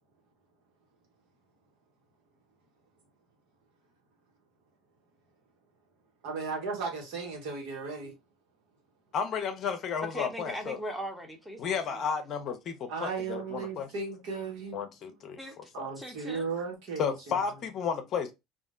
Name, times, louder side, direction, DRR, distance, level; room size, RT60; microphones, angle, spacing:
voice 1, 6.2-8.1 12.9-14.8 15.7-17.4, right 4 dB, 70° right, 1.3 m, -36 dB
voice 2, 9.1-10.8 11.6-13.9 14.7-15.4 15.8-15.9 17.0-18.3, left 6 dB, 50° left, 0.6 m, -32 dB
voice 3, 10.1-12.0 15.4-15.7 16.0-16.5, equal, ahead, 0.9 m, -39 dB
2.5 x 2.1 x 3.6 m
hypercardioid pair, 75°, 0 cm